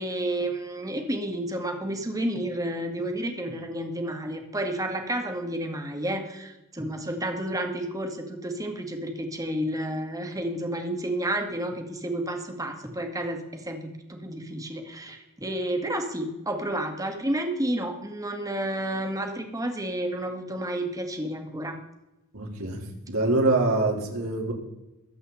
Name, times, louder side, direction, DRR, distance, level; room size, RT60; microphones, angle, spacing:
voice 1, 0.0-21.8, right 1 dB, 15° right, 5 dB, 1.9 m, -31 dB
voice 2, 22.3-22.8 23.1-24.5, right 2 dB, 85° right, -1 dB, 3.9 m, -24 dB
22.5 x 8.2 x 4.2 m, 0.95 s
head